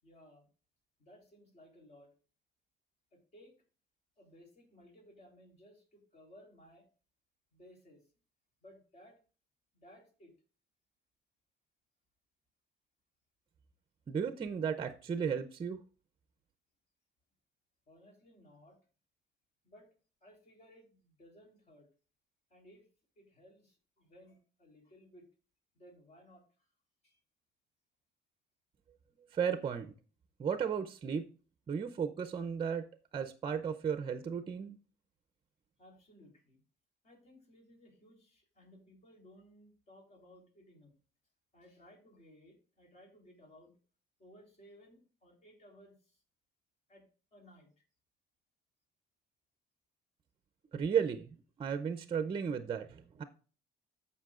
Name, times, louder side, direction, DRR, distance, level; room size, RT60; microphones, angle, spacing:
voice 1, 0.0-0.5 1.0-2.1 3.1-3.5 4.2-6.9 7.5-8.1 8.6-9.2 9.7-10.3 17.9-18.8 19.6-19.9 20.2-21.9 22.5-22.9 23.2-25.3 25.7-26.7 27.0-27.2 29.6-29.7 35.8-36.6 37.0-40.9 41.5-43.7 44.2-46.2 46.9-47.0 47.3-47.8, equal, 40° left, 1 dB, 3.6 m, -59 dB
voice 2, 14.1-15.8 29.3-29.9 30.4-31.3 31.7-32.9 33.1-34.8 50.7-51.3 51.6-53.2, right 7 dB, 30° right, 10 dB, 0.6 m, -34 dB
14.5 x 5.6 x 2.5 m, 0.38 s
cardioid pair, 110°, 17 cm